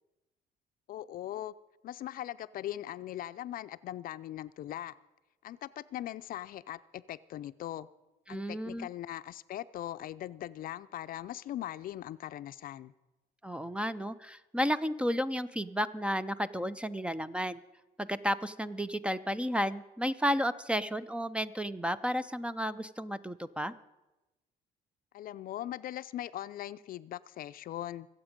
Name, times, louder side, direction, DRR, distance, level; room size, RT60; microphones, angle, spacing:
voice 1, 0.9-1.5 1.8-4.9 5.4-7.9 8.3-12.9 25.1-28.1, left 12 dB, 55° left, 14 dB, 0.5 m, -40 dB
voice 2, 8.3-8.9 13.4-17.6 18.0-23.7, equal, 5° right, 15 dB, 0.4 m, -32 dB
23.0 x 8.0 x 5.2 m, 1.0 s
cardioid pair, 110°, 17 cm